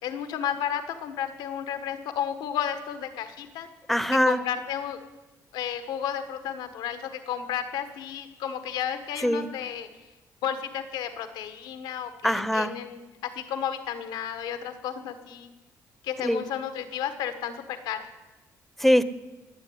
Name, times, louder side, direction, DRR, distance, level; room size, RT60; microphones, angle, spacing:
voice 1, 0.0-3.7 4.2-5.0 5.5-9.9 10.4-15.5 16.0-18.1, left 9 dB, 90° left, 9 dB, 1.4 m, -32 dB
voice 2, 3.9-4.4 9.2-9.5 12.2-12.7 16.2-16.4 18.8-19.0, equal, ahead, 15 dB, 0.8 m, -22 dB
19.5 x 7.4 x 9.9 m, 1.2 s
cardioid pair, 80°, 7 cm